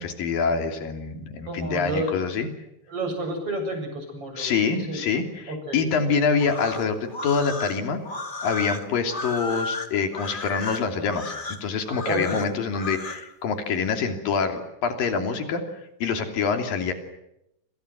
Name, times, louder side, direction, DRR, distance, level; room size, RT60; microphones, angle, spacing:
voice 1, 0.0-2.5 4.4-8.0 8.4-15.6 16.0-16.9, left 5 dB, 85° left, 6 dB, 4.8 m, -26 dB
voice 2, 1.5-2.2 2.9-4.5 4.9-5.0 5.5-5.8 12.1-12.4, right 1 dB, 40° right, 5 dB, 8.3 m, -30 dB
sound 1, 6.3-13.3, left 3 dB, 20° left, 1.4 m, -33 dB
28.5 x 27.5 x 6.2 m, 0.82 s
omnidirectional pair, 3.9 m